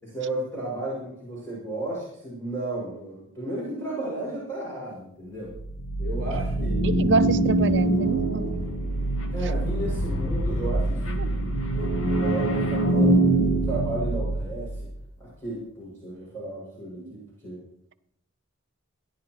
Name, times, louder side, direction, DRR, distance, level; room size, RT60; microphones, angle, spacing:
voice 1, 0.0-5.5 6.0-6.8 9.3-13.2 13.5-14.8 15.2-17.6, right 2 dB, 10° left, 6.4 m, -34 dB
sound 1, 5.5-14.9, right 1 dB, 75° left, 1.7 m, -24 dB
voice 2, 6.8-8.6 11.2-11.3, right 3 dB, 55° right, 0.7 m, -27 dB
28.0 x 11.0 x 3.1 m
head